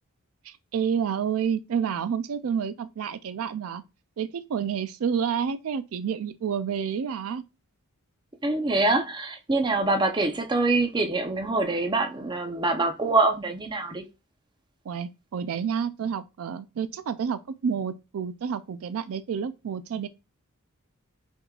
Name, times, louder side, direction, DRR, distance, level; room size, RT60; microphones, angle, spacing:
voice 1, 0.4-3.8 4.2-7.4 14.9-20.1, right 7 dB, 65° right, 0.3 m, -29 dB
voice 2, 8.4-14.0, right 2 dB, 20° right, 0.6 m, -25 dB
5.8 x 3.7 x 2.4 m
head